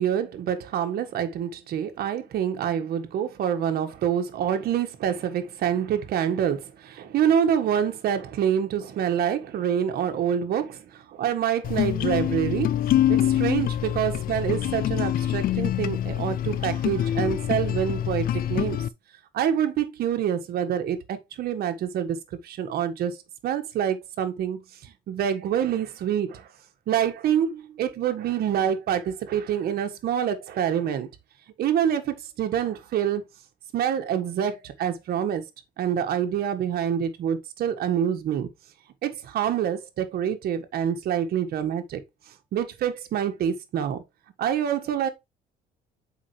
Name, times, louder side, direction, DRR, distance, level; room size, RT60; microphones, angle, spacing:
voice 1, 0.0-12.7 13.1-18.8 19.3-22.2 22.4-23.2 23.4-24.6 25.1-26.5 26.9-31.1 31.6-33.2 33.7-35.4 35.8-38.5 39.0-42.0 42.5-44.0 44.4-45.1, right 9 dB, 65° right, 1.6 m, -26 dB
sound 1, 11.6-18.9, left 11 dB, 60° left, 0.6 m, -25 dB
7.5 x 5.2 x 3.2 m
cardioid pair, 110°, 17 cm